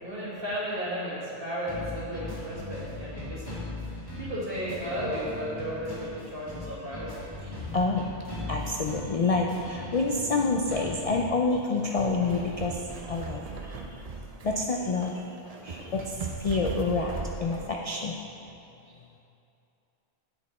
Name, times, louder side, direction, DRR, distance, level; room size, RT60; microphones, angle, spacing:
voice 1, 0.0-3.6 4.2-7.2, equal, 55° right, -7 dB, 2.0 m, -34 dB
sound 1, 1.7-11.3, left 2 dB, 20° left, 1.5 m, -39 dB
voice 2, 7.7-8.0 8.5-13.4 14.4-15.2 15.6-17.1 17.4-18.1, left 3 dB, 50° left, 0 dB, 0.4 m, -27 dB
sound 2, 11.6-17.7, right 4 dB, 40° right, 0.6 m, -39 dB
8.6 x 6.3 x 4.2 m, 2.7 s
omnidirectional pair, 1.1 m